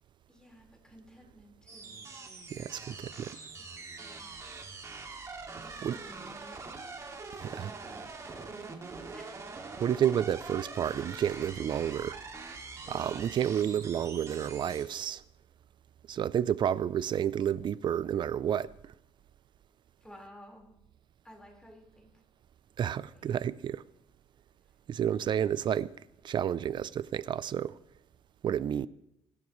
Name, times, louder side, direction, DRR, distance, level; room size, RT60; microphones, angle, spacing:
voice 1, 0.3-2.0 3.8-4.6 5.6-6.9 7.3-9.6 12.8-13.4 20.0-20.8 21.2-22.1 22.8-23.5 24.7-24.8, equal, 5° left, 4.7 m, -55 dB
sound 1, 1.7-14.8, right 4 dB, 25° right, 2.3 m, -44 dB
voice 2, 2.5-3.4 5.8-6.0 7.6-7.7 9.8-12.2 12.9-15.2 16.1-18.7 22.8-23.8 24.9-25.9 26.2-27.8 28.4-28.9, right 9 dB, 45° right, 0.5 m, -30 dB
24.0 x 12.5 x 3.2 m
cardioid pair, 115°, 11 cm